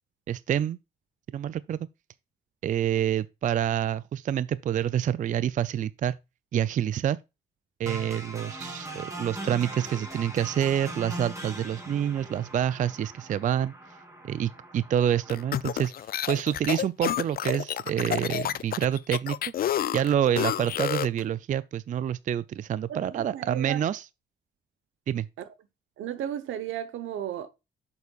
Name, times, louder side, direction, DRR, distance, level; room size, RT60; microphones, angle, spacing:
voice 1, 0.3-0.8 1.3-1.9 2.6-6.2 6.5-7.2 7.8-13.7 14.2-15.9 16.3-19.4 19.9-24.1 25.1-25.3, right 10 dB, 40° right, 0.4 m, -27 dB
sound 1, 7.9-15.9, right 2 dB, 15° right, 2.8 m, -40 dB
sound 2, 15.3-21.2, left 11 dB, 50° left, 0.4 m, -29 dB
voice 2, 22.9-23.8 25.4-25.5 26.0-27.5, right 11 dB, 80° right, 1.0 m, -35 dB
8.2 x 7.0 x 2.4 m
cardioid pair, 90°, 20 cm